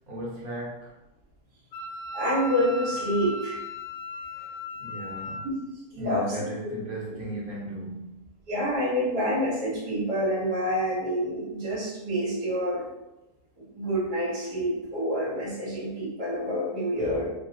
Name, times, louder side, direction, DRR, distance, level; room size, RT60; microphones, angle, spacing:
voice 1, 0.1-0.9 4.8-5.5 6.0-8.1 17.0-17.2, right 1 dB, 60° right, -6 dB, 1.7 m, -36 dB
Wind instrument woodwind instrument, 1.7-5.5, left 2 dB, 85° left, 1.2 m, -36 dB
voice 2, 2.1-3.6 5.9-6.4 6.6-6.7 8.5-12.9 13.6-17.3, equal, 75° right, -9 dB, 1.8 m, -27 dB
5.3 x 2.2 x 2.8 m, 0.96 s
omnidirectional pair, 1.7 m